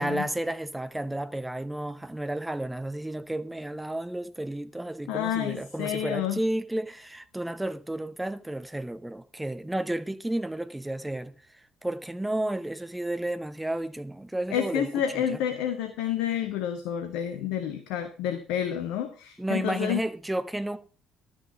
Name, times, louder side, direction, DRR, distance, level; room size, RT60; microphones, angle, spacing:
voice 1, 0.0-14.9 15.1-15.4 19.4-20.8, right 1 dB, 10° right, 0.9 m, -32 dB
voice 2, 5.1-6.4 14.5-20.0, left 10 dB, 65° left, 1.0 m, -29 dB
12.0 x 6.3 x 5.0 m
figure-of-eight pair, 50°, 0 cm